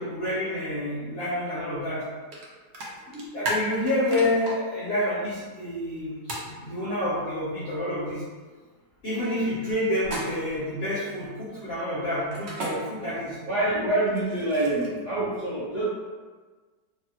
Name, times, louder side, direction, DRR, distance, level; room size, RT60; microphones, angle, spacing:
voice 1, 0.0-2.0 3.1-8.2 9.0-13.4, left 1 dB, 55° left, -10 dB, 0.7 m, -28 dB
sound 1, 2.3-2.4 2.7-4.5 6.3-6.5 10.0-10.6 12.3-12.7 14.1-15.0, right 1 dB, 90° right, 0.5 m, -33 dB
voice 2, 13.4-15.9, right 2 dB, 60° right, -9 dB, 0.8 m, -26 dB
3.3 x 2.1 x 2.8 m, 1.4 s
omnidirectional pair, 1.9 m